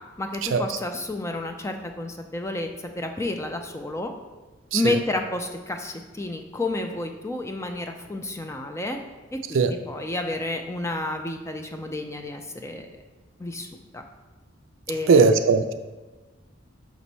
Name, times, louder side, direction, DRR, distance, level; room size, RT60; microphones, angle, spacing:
voice 1, 0.2-2.7 3.0-4.1 4.7-9.0 9.3-12.9 13.4-13.7 13.9-14.0 14.9-15.2, left 2 dB, 15° left, 4 dB, 0.4 m, -30 dB
voice 2, 15.1-15.7, right 4 dB, 85° right, 9 dB, 0.4 m, -18 dB
6.0 x 3.0 x 5.4 m, 1.2 s
head